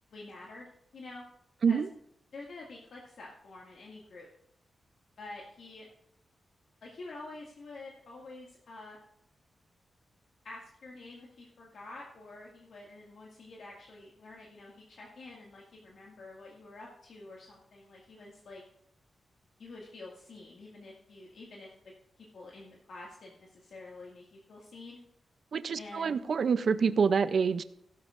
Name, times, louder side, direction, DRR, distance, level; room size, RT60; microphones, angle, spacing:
voice 1, 0.1-1.3 1.7-1.8 2.3-4.3 5.2-5.9 6.8-9.0 10.4-18.6 19.6-21.7 22.2-25.0 25.8-26.2, left 2 dB, 75° left, -3 dB, 2.0 m, -48 dB
voice 2, 25.5-27.6, right 6 dB, 60° right, 13 dB, 0.5 m, -26 dB
16.5 x 12.0 x 2.5 m, 0.73 s
wide cardioid pair, 105°, 0 cm